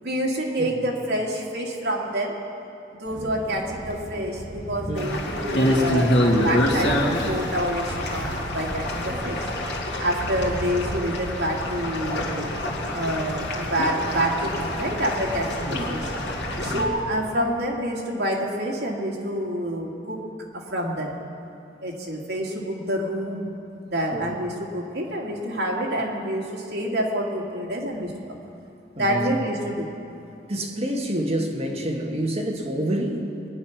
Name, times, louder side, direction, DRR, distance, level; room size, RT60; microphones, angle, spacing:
voice 1, 0.0-2.4 3.0-9.4 10.0-12.5 12.9-16.0 16.6-20.2 20.5-21.2 21.8-23.5 23.9-28.4 29.0-29.9, equal, 70° right, -3 dB, 2.5 m, -27 dB
sound 1, 3.1-17.2, equal, 85° right, 2.4 m, -38 dB
sound 2, 5.0-16.9, left 1 dB, 85° left, 2.2 m, -26 dB
voice 2, 24.1-24.4 29.0-29.4 30.5-33.3, right 1 dB, 35° right, 0 dB, 1.7 m, -28 dB
21.5 x 9.7 x 5.9 m, 2.7 s
head